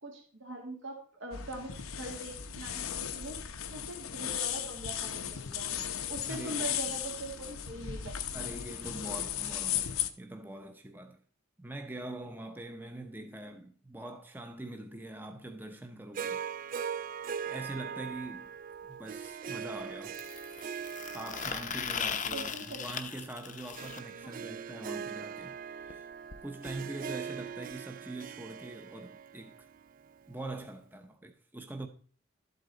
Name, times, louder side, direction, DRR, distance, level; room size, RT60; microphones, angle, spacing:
voice 1, 0.0-3.4 3.7-5.7 6.1-8.2 22.3-22.9 24.2-24.3, right 2 dB, 65° right, 1.9 m, -42 dB
sound 1, 1.3-10.1, left 10 dB, 90° left, 0.9 m, -36 dB
voice 2, 6.2-7.0 8.3-11.2 11.6-16.5 17.5-18.5 18.9-20.2 21.1-26.1 26.4-29.7 30.3-31.9, right 2 dB, 10° right, 0.8 m, -43 dB
Harp, 16.1-30.5, right 7 dB, 40° right, 0.4 m, -41 dB
sound 2, 18.1-18.2 20.1-24.0 25.9-26.0 26.3-26.4 26.7-26.8 27.7-27.8, left 7 dB, 35° left, 0.7 m, -38 dB
12.5 x 8.0 x 4.0 m
head